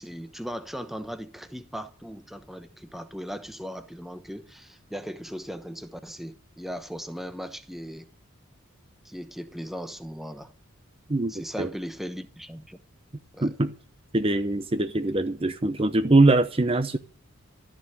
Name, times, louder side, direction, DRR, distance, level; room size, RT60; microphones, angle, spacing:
voice 1, 0.0-8.1 9.0-10.5 11.3-12.8 13.3-13.5, equal, ahead, 0.9 m, -38 dB
voice 2, 11.1-11.7 13.4-13.7 14.1-17.0, right 2 dB, 25° right, 0.7 m, -22 dB
13.0 x 7.5 x 9.9 m
head